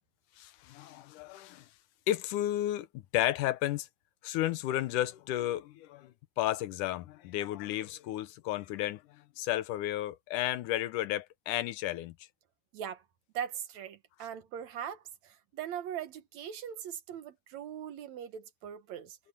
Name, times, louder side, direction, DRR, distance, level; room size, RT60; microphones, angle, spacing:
voice 1, 0.4-1.6 2.1-2.9 3.1-3.9 4.2-6.1 6.4-9.0 9.4-12.1, left 14 dB, 80° left, 2.3 m, -32 dB
voice 2, 13.3-19.2, right 9 dB, 65° right, 2.2 m, -40 dB
omnidirectional pair, 3.7 m